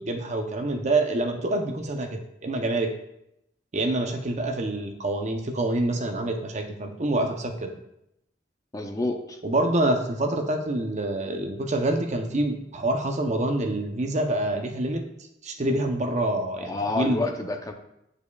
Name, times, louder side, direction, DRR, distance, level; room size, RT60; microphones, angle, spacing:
voice 1, 0.0-2.9 3.7-7.7 9.4-15.0 15.4-17.2, right 1 dB, 40° right, 4 dB, 0.7 m, -26 dB
voice 2, 8.7-9.4 16.6-17.7, left 2 dB, 20° left, 4 dB, 0.5 m, -29 dB
8.6 x 4.8 x 2.3 m, 0.80 s
head